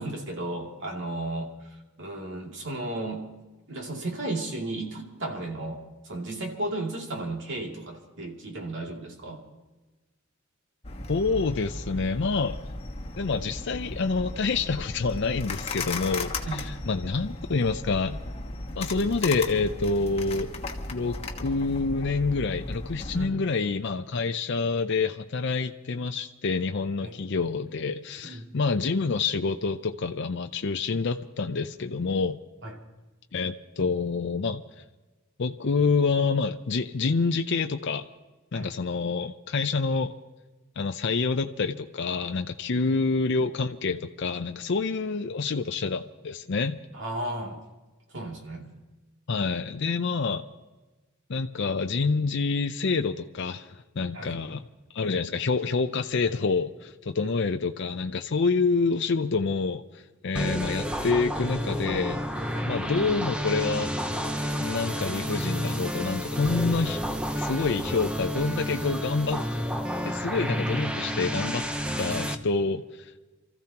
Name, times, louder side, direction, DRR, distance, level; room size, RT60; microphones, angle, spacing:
voice 1, 0.0-1.5 2.0-3.3 3.7-9.4 16.5-16.7 23.1-23.4 27.0-27.1 28.2-28.5 32.6-32.8 38.5-38.7 42.7-43.0 46.9-47.6 48.1-48.7 54.1-54.4 57.2-57.3 62.5-62.7, right 2 dB, 60° right, 0 dB, 2.6 m, -34 dB
sound 1, 10.8-23.3, left 2 dB, 30° left, 1.4 m, -36 dB
voice 2, 11.1-12.6 13.2-18.2 18.8-20.5 20.9-32.4 33.3-34.6 35.4-38.0 38.5-40.1 40.8-46.8 49.3-50.5 51.3-54.6 54.9-62.2 62.7-63.9 64.6-67.0 67.4-69.4 70.0-71.6 72.0-73.2, left 4 dB, 60° left, 6 dB, 0.6 m, -27 dB
sound 2, 60.3-72.3, equal, 5° right, 0.8 m, -30 dB
28.0 x 14.5 x 2.9 m, 1.2 s
head